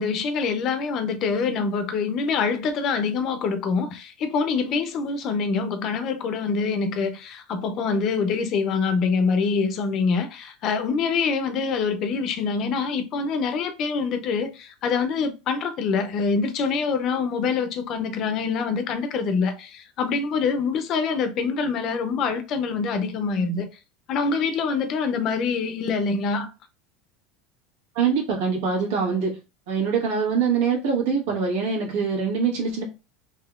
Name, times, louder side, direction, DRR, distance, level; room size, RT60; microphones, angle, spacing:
voice 1, 0.0-23.7 24.1-26.5, left 5 dB, 40° left, 0.5 m, -25 dB
voice 2, 27.9-29.4 29.7-32.8, right 5 dB, 85° right, 1.5 m, -24 dB
3.5 x 2.8 x 2.3 m
supercardioid pair, 150°, 0 cm